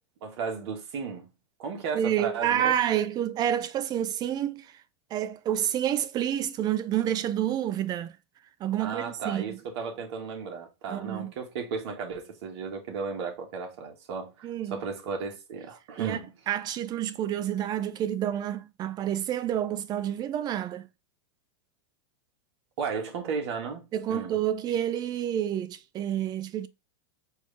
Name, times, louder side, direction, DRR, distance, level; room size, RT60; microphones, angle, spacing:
voice 1, 0.2-1.3 1.6-2.7 8.8-16.3 22.8-24.4, right 5 dB, 65° right, 1.7 m, -34 dB
voice 2, 1.9-4.8 5.1-8.2 8.6-9.6 10.9-11.3 14.4-14.8 16.0-16.2 16.5-20.9 23.9-26.7, right 10 dB, 30° right, 0.5 m, -29 dB
4.6 x 2.8 x 3.3 m
supercardioid pair, 135°, 15 cm